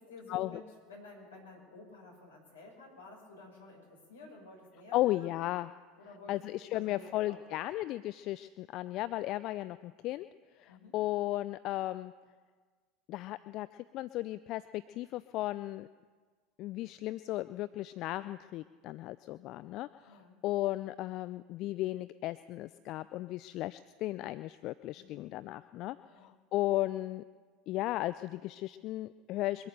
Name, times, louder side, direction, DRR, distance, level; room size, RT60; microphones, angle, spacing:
voice 1, 0.0-5.4 5.9-7.6 10.7-11.0 20.1-20.4 24.9-25.3 26.0-26.3, left 3 dB, 75° left, 0 dB, 5.4 m, -52 dB
voice 2, 4.9-5.7 6.3-10.3 10.6-12.1 13.1-15.9 16.6-27.2 27.7-29.7, left 16 dB, 50° left, 15 dB, 0.4 m, -35 dB
23.5 x 8.8 x 6.8 m, 1.5 s
figure-of-eight pair, 75°, 0 cm